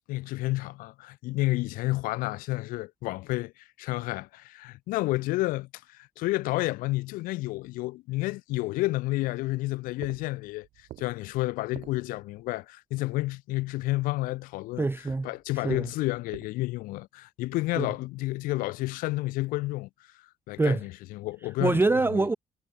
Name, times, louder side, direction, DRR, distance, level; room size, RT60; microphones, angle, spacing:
voice 1, 0.1-14.9 15.2-19.9 20.5-21.8 22.1-22.3, left 20 dB, 60° left, 0.5 m, -30 dB
sound 1, 9.8-12.6 15.0-16.5, right 16 dB, 60° right, 4.2 m, -49 dB
voice 2, 14.8-15.3 15.5-15.9 17.8-17.9 20.6-20.8 21.6-22.3, right 3 dB, 15° right, 0.7 m, -25 dB
figure-of-eight pair, 45°, 17 cm